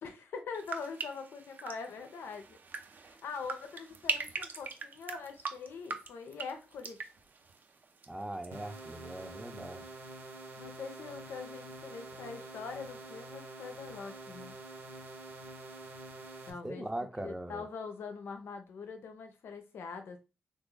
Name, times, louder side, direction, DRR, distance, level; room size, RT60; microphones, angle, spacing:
voice 1, 0.0-2.6 3.0-7.1 10.6-14.6 16.5-16.9 17.2-20.2, left 5 dB, 80° left, 0.7 m, -43 dB
sound 1, 0.5-8.5 8.7-9.3, right 4 dB, 55° right, 0.5 m, -41 dB
voice 2, 8.1-9.8 16.6-17.7, right 1 dB, 15° right, 0.6 m, -40 dB
sound 2, 8.5-16.5, right 2 dB, 75° right, 1.1 m, -47 dB
2.9 x 2.5 x 3.8 m
cardioid pair, 65°, 4 cm